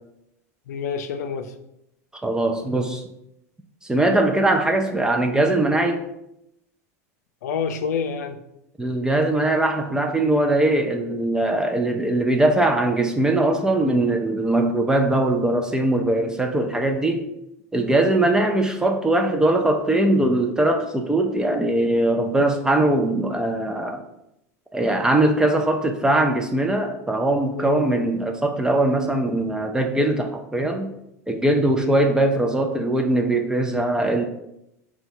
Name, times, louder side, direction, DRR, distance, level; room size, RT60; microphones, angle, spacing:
voice 1, 0.7-1.6 7.4-8.4 27.6-27.9 31.8-32.0, left 6 dB, 85° left, 8 dB, 0.4 m, -28 dB
voice 2, 2.2-3.0 3.8-6.1 8.8-17.3 17.7-24.0 24.7-30.9 31.3-34.2, right 1 dB, 10° right, 3 dB, 0.4 m, -21 dB
3.7 x 2.3 x 4.3 m, 0.83 s
hypercardioid pair, 110°, 9 cm